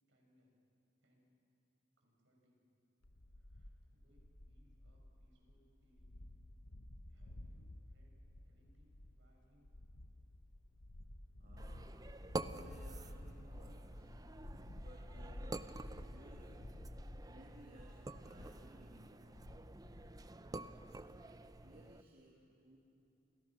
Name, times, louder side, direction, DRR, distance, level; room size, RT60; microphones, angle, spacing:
voice 1, 0.1-0.5 1.0-1.2 2.0-2.6 3.3-6.2 7.1-9.7, equal, 70° right, 0 dB, 7.1 m, -74 dB
sound 1, 3.0-21.6, left 1 dB, 85° left, 1.3 m, -53 dB
voice 2, 11.4-12.0 12.4-14.1 14.8-16.7 17.3-19.3 20.1-21.1 21.6-22.8, right 1 dB, 50° right, -4 dB, 2.9 m, -61 dB
sound 2, 11.6-22.0, right 2 dB, 20° right, 0.6 m, -49 dB
Bowed string instrument, 12.4-16.4, equal, 45° left, 4.7 m, -73 dB
29.5 x 27.0 x 6.2 m, 2.7 s
head